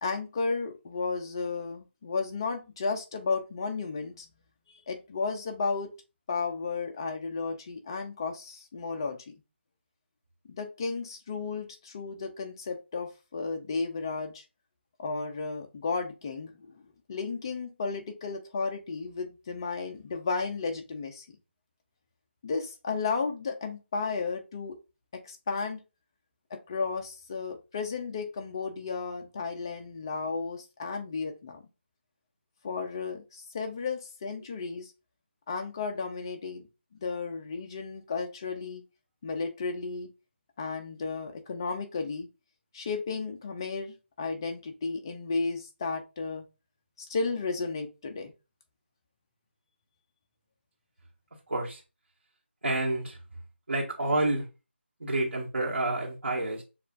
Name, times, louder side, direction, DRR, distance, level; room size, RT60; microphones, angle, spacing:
voice 1, 0.0-4.3 4.9-5.9 6.3-9.3 10.5-14.4 15.0-16.7 17.1-21.3 22.4-24.8 25.2-25.8 26.7-31.6 32.6-34.9 35.5-36.7 37.0-38.8 39.2-40.1 40.6-42.3 42.7-46.4 47.0-48.3, left 4 dB, 20° left, 0.5 m, -33 dB
voice 2, 51.5-51.8 52.6-53.2 53.7-54.5 55.0-56.6, right 2 dB, 90° right, 1.4 m, -29 dB
6.5 x 2.4 x 2.5 m
figure-of-eight pair, 170°, 7 cm